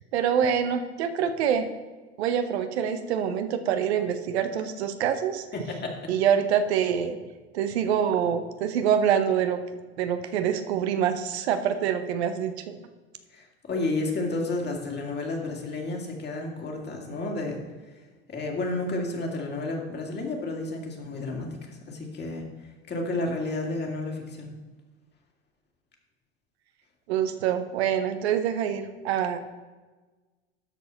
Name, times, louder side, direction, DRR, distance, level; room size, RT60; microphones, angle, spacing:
voice 1, 0.1-1.7 2.2-5.4 6.1-7.2 7.5-9.6 10.0-12.7 27.1-29.4, right 8 dB, 70° right, 9 dB, 0.8 m, -25 dB
voice 2, 5.5-6.1 13.3-17.6 17.9-18.0 18.3-22.5 22.9-24.5, left 2 dB, 30° left, 1 dB, 2.2 m, -31 dB
13.0 x 4.8 x 4.1 m, 1.3 s
hypercardioid pair, 80°, 33 cm